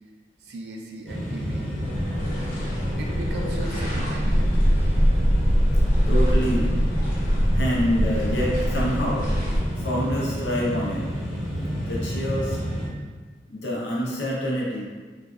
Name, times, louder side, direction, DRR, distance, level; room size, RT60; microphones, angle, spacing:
voice 1, 0.4-1.7 3.0-4.5 8.1-8.3, right 2 dB, 70° right, 0 dB, 0.3 m, -37 dB
sound 1, 1.1-12.9, equal, 5° left, 0.8 m, -29 dB
sound 2, 1.8-9.6, equal, 45° left, 0.8 m, -23 dB
voice 2, 6.1-6.7 7.5-9.3 9.8-11.1 11.9-12.6 13.5-14.8, equal, 85° left, -5 dB, 0.8 m, -26 dB
3.2 x 2.4 x 2.4 m, 1.4 s
head